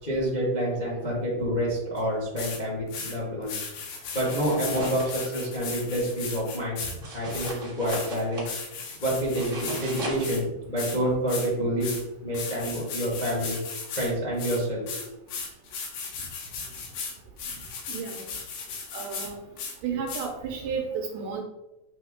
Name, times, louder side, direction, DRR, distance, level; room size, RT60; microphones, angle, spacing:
voice 1, 0.0-3.5 4.1-8.4 9.0-13.6 14.0-15.1, right 1 dB, 55° left, -5 dB, 0.4 m, -28 dB
sound 1, 2.0-2.1 2.4-2.6 2.9-3.1 3.4-7.0 7.3-10.4 10.8-11.0 11.3-11.5 11.8-12.0 12.3-14.1 14.4-19.3 19.6-19.7 20.1-20.3, left 5 dB, 80° left, 3.1 m, -36 dB
sound 2, 4.0-5.5 7.0-8.5 9.2-10.3, equal, 50° right, 0.6 m, -37 dB
voice 2, 17.9-18.3 18.9-19.4 19.8-21.4, right 6 dB, 75° right, 2 dB, 2.1 m, -32 dB
8.4 x 3.4 x 3.6 m, 0.96 s
omnidirectional pair, 4.3 m